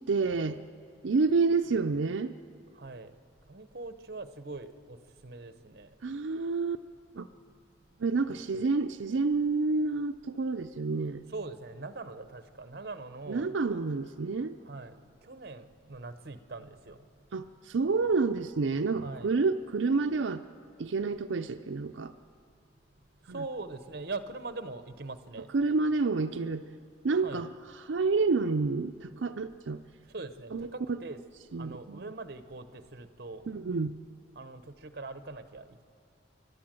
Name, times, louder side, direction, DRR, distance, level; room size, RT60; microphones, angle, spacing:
voice 1, 0.1-0.6 1.0-2.3 6.0-6.8 7.1-7.3 8.0-11.2 13.3-14.6 17.3-20.4 20.8-22.1 23.3-23.4 25.5-26.6 27.0-27.5 27.9-29.8 30.5-31.0 31.5-32.0 33.5-34.0, right 4 dB, 85° right, 0.5 m, -29 dB
voice 2, 2.7-3.1 3.5-5.9 8.3-8.6 11.3-13.5 14.6-17.1 19.0-19.3 23.3-25.5 27.2-27.4 30.1-31.2 31.6-33.4 34.3-35.8, right 3 dB, 55° right, 0.9 m, -42 dB
29.5 x 12.5 x 7.6 m
head